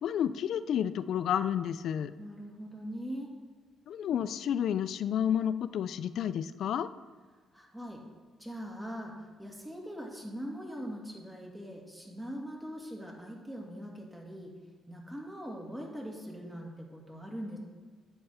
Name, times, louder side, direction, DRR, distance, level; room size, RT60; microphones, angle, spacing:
voice 1, 0.0-2.1 3.9-6.9, left 9 dB, 70° left, 13 dB, 0.4 m, -30 dB
voice 2, 2.2-3.3 7.5-8.0 8.4-14.6 14.9-17.6, equal, 10° right, -2 dB, 2.5 m, -41 dB
11.0 x 7.9 x 4.3 m, 1.5 s
cardioid pair, 90°, 0 cm